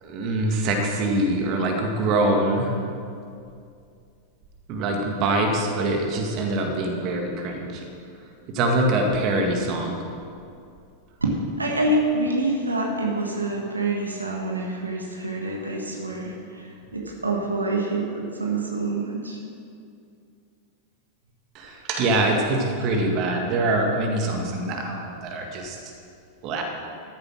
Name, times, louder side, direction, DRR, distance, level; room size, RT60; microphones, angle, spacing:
voice 1, 0.0-2.7 4.7-7.8 8.5-10.0 21.6-25.8 26.4-26.6, right 2 dB, 40° right, 2 dB, 1.8 m, -24 dB
voice 2, 11.2-16.7 16.9-19.4, right 2 dB, 80° right, -1 dB, 1.5 m, -26 dB
13.5 x 7.5 x 6.3 m, 2.4 s
figure-of-eight pair, 90°, 0 cm